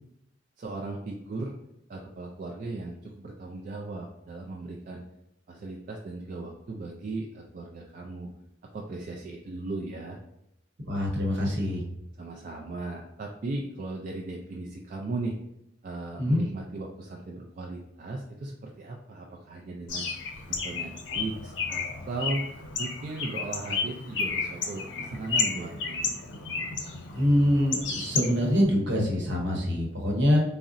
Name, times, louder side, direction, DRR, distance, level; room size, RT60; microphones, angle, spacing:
voice 1, 0.6-1.5 1.9-5.0 5.5-8.3 8.7-10.2 12.2-15.4 15.8-20.1 20.5-22.5 22.8-26.1, right 2 dB, 45° right, -1 dB, 0.3 m, -37 dB
voice 2, 10.8-11.8 16.2-16.4 27.1-30.4, left 1 dB, 70° right, -1 dB, 0.9 m, -24 dB
Bird, 19.9-28.6, left 4 dB, 80° left, 0.5 m, -32 dB
3.7 x 2.0 x 2.5 m, 0.83 s
head